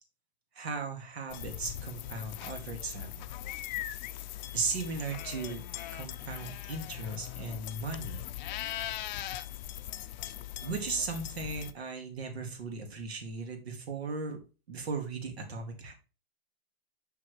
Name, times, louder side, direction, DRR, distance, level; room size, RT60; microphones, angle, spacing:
voice 1, 0.6-3.3 4.5-5.6 5.9-8.2 10.6-14.4 14.7-15.9, right 4 dB, 90° right, 3 dB, 2.3 m, -37 dB
sound 1, 1.3-11.7, left 13 dB, 45° left, 0.5 m, -40 dB
6.1 x 5.9 x 3.2 m, 0.32 s
hypercardioid pair, 140°, 31 cm